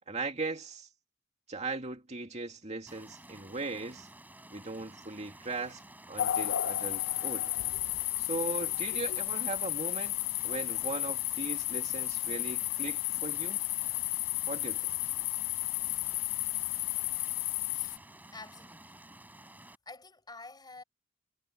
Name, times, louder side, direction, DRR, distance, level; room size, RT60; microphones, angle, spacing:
voice 1, 0.1-0.9 1.5-4.1 4.5-5.8 6.1-7.5 8.2-10.2 10.4-13.6 14.5-14.9, right 3 dB, 35° right, 2.3 m, -38 dB
Stream, 2.9-19.8, right 1 dB, 10° right, 7.0 m, -53 dB
sound 1, 6.2-18.0, left 16 dB, 65° left, 0.4 m, -33 dB
voice 2, 18.3-19.0 19.6-20.8, left 3 dB, 20° left, 6.0 m, -49 dB
head